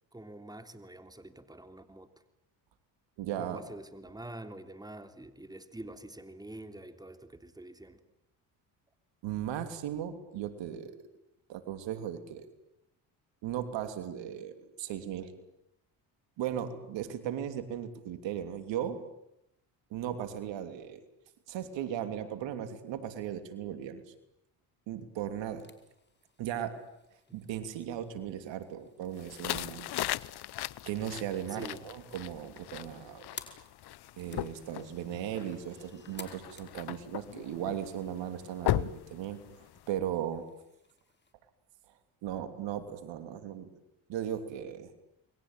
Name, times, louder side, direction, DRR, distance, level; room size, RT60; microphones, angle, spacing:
voice 1, 0.1-2.1 3.4-8.0 31.5-31.9, right 1 dB, 10° right, 9 dB, 3.3 m, -46 dB
voice 2, 3.2-3.6 9.2-11.0 11.5-12.5 13.4-15.3 16.4-19.0 19.9-21.0 21.5-24.0 24.9-25.7 26.4-26.8 27.3-29.9 30.9-33.2 34.2-40.4 42.2-43.7 44.1-44.9, right 10 dB, 75° right, 10 dB, 3.2 m, -37 dB
sound 1, 25.3-41.3, left 4 dB, 25° left, 5.0 m, -56 dB
sound 2, 29.2-39.9, left 14 dB, 60° left, 0.9 m, -38 dB
28.5 x 22.5 x 9.1 m, 0.82 s
supercardioid pair, 70°, 44 cm